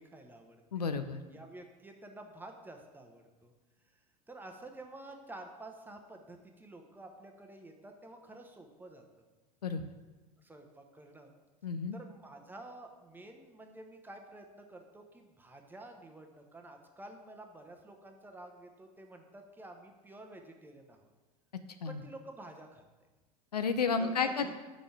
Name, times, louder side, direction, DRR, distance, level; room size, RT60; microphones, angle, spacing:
voice 1, 0.0-0.8 1.3-3.5 3.9-4.0 4.3-9.0 10.4-11.3 11.9-21.1 21.9-22.8 24.0-24.5, right 2 dB, 10° right, 3 dB, 0.8 m, -50 dB
voice 2, 0.7-1.2 9.6-9.8 11.6-12.0 21.8-22.0 23.5-24.5, left 5 dB, 80° left, 9 dB, 0.5 m, -31 dB
5.4 x 5.1 x 5.8 m, 1.2 s
figure-of-eight pair, 80°, 20 cm